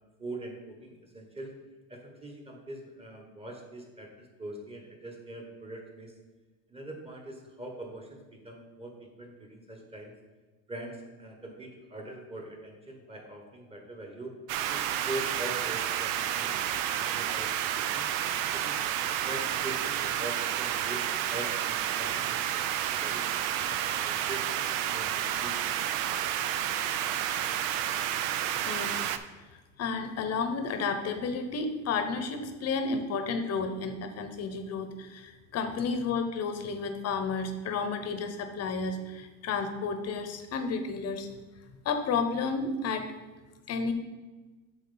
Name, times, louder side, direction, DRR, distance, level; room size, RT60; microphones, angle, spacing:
voice 1, 0.2-1.5 1.9-6.1 6.7-8.9 9.2-10.1 10.7-14.3 14.7-18.1 18.5-18.8 19.2-23.2 23.6-24.4 24.9-25.6, right 1 dB, 15° right, 1 dB, 1.3 m, -42 dB
sound 1, 14.5-29.2, right 11 dB, 70° right, 0.6 m, -30 dB
voice 2, 28.6-29.2 29.8-41.3 41.8-43.1 43.7-43.9, left 4 dB, 35° left, 7 dB, 0.9 m, -32 dB
7.6 x 3.1 x 5.8 m, 1.2 s
supercardioid pair, 115°, 43 cm